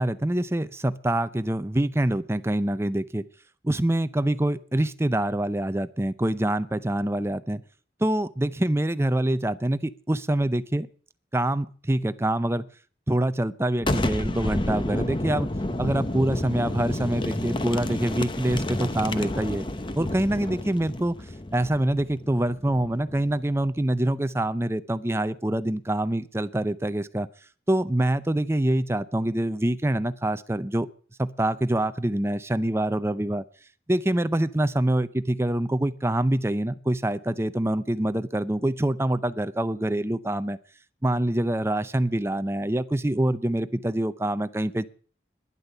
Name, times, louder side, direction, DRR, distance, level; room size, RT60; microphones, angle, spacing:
voice 1, 0.0-3.2 3.6-7.6 8.0-10.9 11.3-12.7 13.1-15.5 15.8-19.7 19.9-21.1 21.5-27.3 27.7-30.9 31.2-33.4 33.9-40.6 41.0-44.8, right 1 dB, 15° right, 13 dB, 0.6 m, -25 dB
Boom, 13.8-23.4, left 1 dB, 25° left, 0.8 m, -30 dB
11.5 x 11.0 x 6.8 m, 0.43 s
head